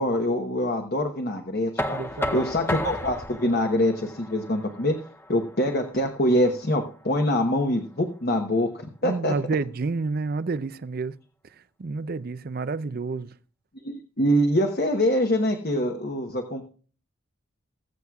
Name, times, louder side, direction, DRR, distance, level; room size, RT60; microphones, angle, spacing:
voice 1, 0.0-2.0 2.3-5.0 5.3-9.4 13.8-16.6, left 1 dB, 45° left, 1.0 m, -24 dB
Knock, 1.8-7.6, left 1 dB, 10° left, 0.6 m, -34 dB
voice 2, 1.9-2.6 9.0-11.2 11.8-13.3, right 3 dB, 45° right, 0.4 m, -29 dB
20.0 x 7.9 x 2.4 m
head